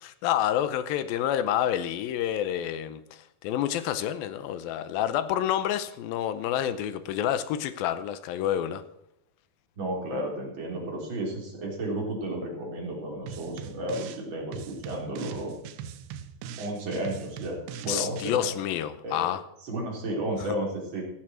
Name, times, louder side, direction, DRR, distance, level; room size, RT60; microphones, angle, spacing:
voice 1, 0.0-8.8 17.9-19.4 20.4-20.5, left 11 dB, 75° left, 2.2 m, -28 dB
voice 2, 9.8-15.5 16.6-18.5 19.0-19.3 19.7-21.1, right 1 dB, 30° right, 3.9 m, -33 dB
sound 1, 13.3-14.2 14.5-18.3, right 8 dB, 85° right, 2.9 m, -41 dB
16.0 x 7.8 x 6.2 m
omnidirectional pair, 4.9 m